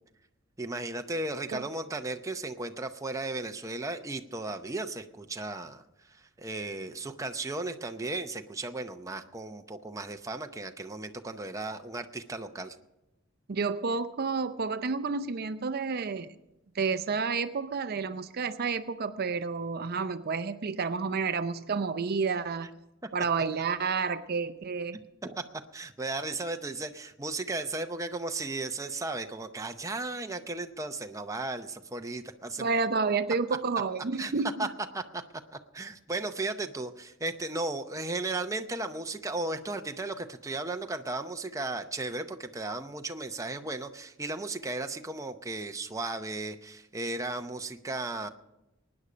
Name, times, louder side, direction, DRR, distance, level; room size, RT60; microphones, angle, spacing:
voice 1, 0.6-5.8 6.1-12.8 25.2-25.4 25.7-32.7 34.2-34.3 34.6-34.7 34.9-35.2 35.5-48.3, right 2 dB, 15° right, 6 dB, 0.7 m, -35 dB
voice 2, 13.5-16.3 16.7-22.7 23.1-25.0 32.6-34.7, right 4 dB, 50° right, 12 dB, 0.5 m, -30 dB
23.0 x 9.7 x 5.1 m, 0.93 s
head